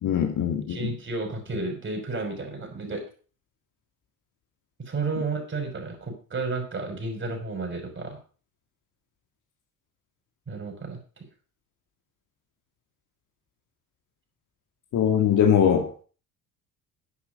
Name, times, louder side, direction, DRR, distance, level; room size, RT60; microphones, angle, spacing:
voice 1, 0.0-0.9 14.9-15.9, left 8 dB, 40° left, 2.2 m, -21 dB
voice 2, 0.7-3.0 4.8-8.2 10.5-11.0, right 3 dB, 25° right, 5.9 m, -32 dB
12.0 x 10.5 x 5.2 m
figure-of-eight pair, 60°, 47 cm